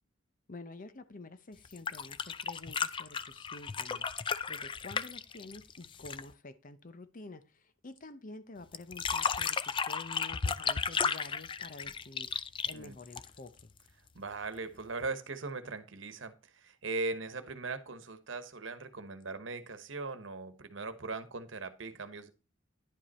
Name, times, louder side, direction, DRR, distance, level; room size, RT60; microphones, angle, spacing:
voice 1, 0.5-4.1 4.5-12.3 12.7-13.7, left 2 dB, 45° left, 0.7 m, -49 dB
sound 1, 1.6-6.3 8.7-13.6 15.0-15.1, left 6 dB, 25° left, 0.4 m, -34 dB
voice 2, 14.1-22.3, right 3 dB, 75° right, 1.1 m, -39 dB
10.5 x 5.2 x 4.2 m
head